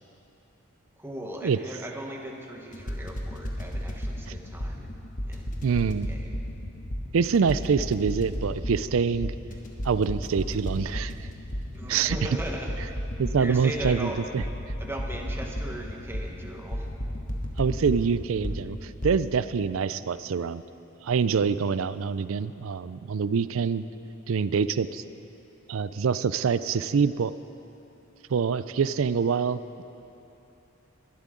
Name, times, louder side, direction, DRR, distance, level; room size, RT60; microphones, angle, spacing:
voice 1, 1.0-4.9 5.2-6.3 11.7-13.0 13.3-14.2 14.8-16.9, right 1 dB, 10° right, 0 dB, 1.3 m, -38 dB
sound 1, 2.7-19.1, equal, 40° left, 1.4 m, -34 dB
voice 2, 5.6-6.1 7.1-9.3 9.8-11.1 11.9-12.2 13.2-14.4 17.6-20.6 21.0-23.8 24.3-25.0 25.7-27.3 28.3-29.8, right 6 dB, 75° right, 15 dB, 0.4 m, -25 dB
21.0 x 12.0 x 3.8 m, 2.9 s
head